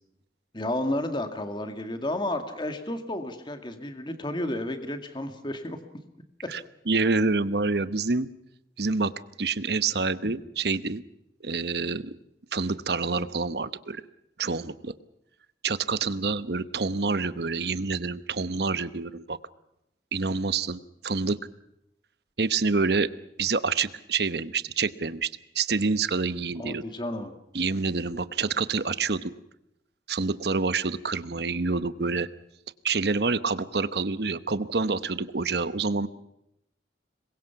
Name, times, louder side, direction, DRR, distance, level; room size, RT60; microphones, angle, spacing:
voice 1, 0.5-5.8 6.4-6.5 10.2-10.3 26.6-27.4, left 1 dB, 25° left, 7 dB, 2.0 m, -32 dB
voice 2, 6.9-8.3 8.8-9.1 9.4-11.0 11.4-12.1 12.5-14.0 14.4-14.9 15.6-19.4 20.1-21.4 22.4-23.1 23.4-25.3 25.5-26.8 27.5-29.3 30.1-32.3 32.8-36.1, right 4 dB, 65° right, 14 dB, 0.9 m, -27 dB
26.5 x 22.5 x 5.8 m, 0.83 s
head